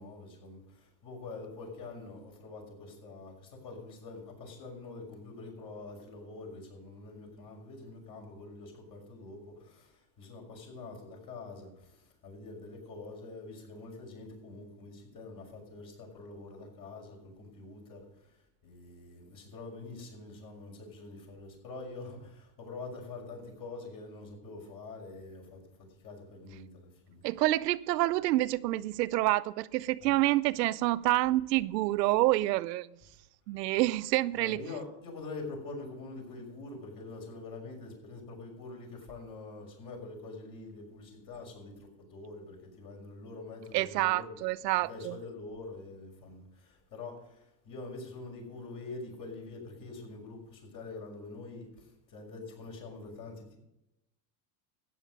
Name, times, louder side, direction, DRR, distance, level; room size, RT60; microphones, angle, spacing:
voice 1, 0.0-18.3 18.6-27.2 30.0-30.2 34.3-44.4 44.8-53.6, left 3 dB, 40° left, 6.1 m, -45 dB
voice 2, 27.2-32.9 33.5-34.6 43.7-45.2, right 17 dB, 90° right, 0.7 m, -28 dB
14.0 x 9.6 x 5.4 m
supercardioid pair, 130°, 48 cm